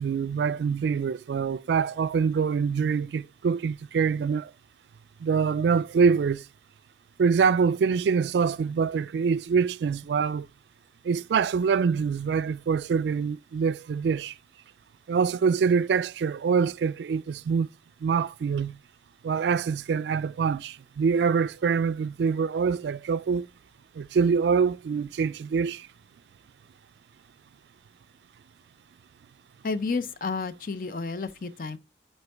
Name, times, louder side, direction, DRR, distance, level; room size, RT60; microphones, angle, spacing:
voice 1, 0.0-4.5 5.2-6.4 7.2-10.5 11.0-14.3 15.1-17.7 18.0-18.8 19.2-23.5 24.0-25.9, right 6 dB, 75° right, 0.3 m, -25 dB
voice 2, 29.6-31.8, left 4 dB, 50° left, 0.5 m, -31 dB
8.0 x 4.4 x 3.4 m
head